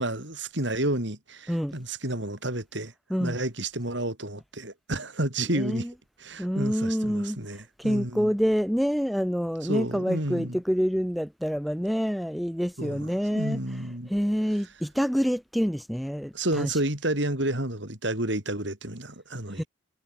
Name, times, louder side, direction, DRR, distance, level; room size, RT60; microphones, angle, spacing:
voice 1, 0.0-2.9 3.2-5.9 6.2-8.3 9.6-10.6 12.8-14.1 16.3-19.7, right 1 dB, 60° right, 5.8 m, -30 dB
voice 2, 5.4-5.9 6.4-7.4 7.8-13.6 14.1-16.8 19.6-19.7, equal, ahead, 1.5 m, -27 dB
head